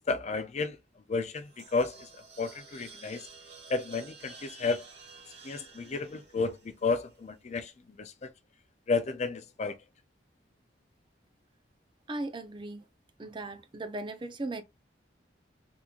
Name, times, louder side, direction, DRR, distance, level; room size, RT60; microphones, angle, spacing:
voice 1, 0.1-0.8 1.1-2.1 2.4-3.2 3.7-4.8 5.4-7.7 8.0-8.1 8.9-9.8, left 4 dB, 40° left, 0.4 m, -32 dB
sound 1, 1.2-7.5, right 4 dB, 85° right, 1.9 m, -52 dB
voice 2, 12.1-12.8 13.2-14.6, right 2 dB, 25° right, 0.5 m, -37 dB
3.6 x 3.0 x 2.3 m
head